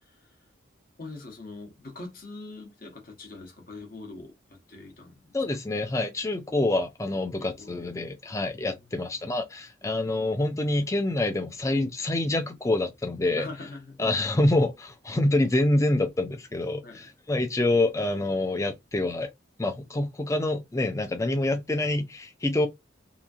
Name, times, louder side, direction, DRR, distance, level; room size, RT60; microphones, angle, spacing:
voice 1, 1.0-5.4 7.4-7.9 8.7-9.2 13.4-14.0 16.8-17.0, left 3 dB, 45° left, 1.0 m, -43 dB
voice 2, 5.3-13.5 14.0-19.3 19.6-22.7, left 2 dB, 15° left, 0.4 m, -26 dB
2.9 x 2.6 x 2.4 m
head